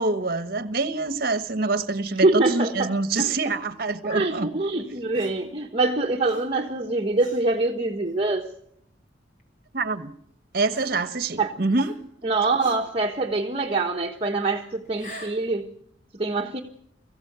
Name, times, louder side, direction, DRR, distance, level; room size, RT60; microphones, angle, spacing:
voice 1, 0.0-4.5 9.7-10.1 10.5-11.9, right 3 dB, 50° right, 1.3 m, -26 dB
voice 2, 2.2-3.3 4.0-8.5 11.4-11.5 12.2-15.8 16.1-16.6, right 3 dB, 30° right, 1.3 m, -24 dB
Gasp, 3.1-3.5 5.1-5.5 6.2-6.6 7.2-7.5 8.2-8.3 9.4-9.5 10.7-11.3 11.7-12.2 12.6-13.0 14.8-15.5, left 1 dB, 45° left, 3.4 m, -44 dB
23.0 x 15.5 x 8.0 m
head